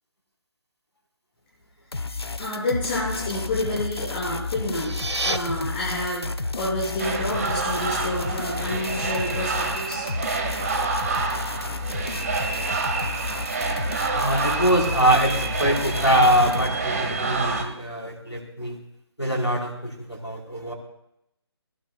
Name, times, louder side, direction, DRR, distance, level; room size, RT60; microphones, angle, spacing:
sound 1, 1.9-16.7, left 3 dB, 70° left, 0.9 m, -32 dB
voice 1, 2.4-4.9 5.2-10.1, left 1 dB, 25° left, -8 dB, 6.7 m, -29 dB
sound 2, 4.6-5.4, right 2 dB, 85° right, 1.2 m, -28 dB
sound 3, 7.0-17.6, right 4 dB, 35° right, 1.7 m, -28 dB
voice 2, 14.1-18.8 19.2-20.7, equal, 90° left, 1 dB, 4.3 m, -23 dB
19.0 x 18.5 x 2.4 m, 0.80 s
figure-of-eight pair, 145°, 14 cm